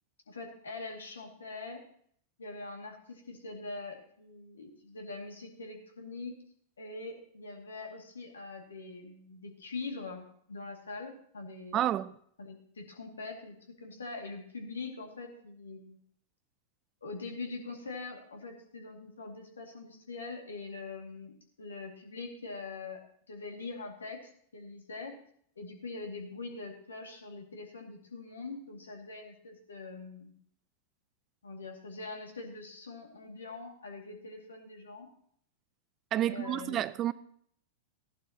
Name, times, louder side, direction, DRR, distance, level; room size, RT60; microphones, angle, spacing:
voice 1, 0.3-1.8 2.4-6.4 6.8-10.2 10.5-11.8 12.4-16.0 17.0-23.0 23.3-25.2 25.6-30.3 31.4-35.1 36.2-36.8, left 3 dB, 85° left, 2.3 m, -43 dB
voice 2, 11.7-12.1 36.1-37.1, right 12 dB, 35° right, 0.5 m, -30 dB
15.5 x 11.5 x 2.9 m
hypercardioid pair, 100°, 0 cm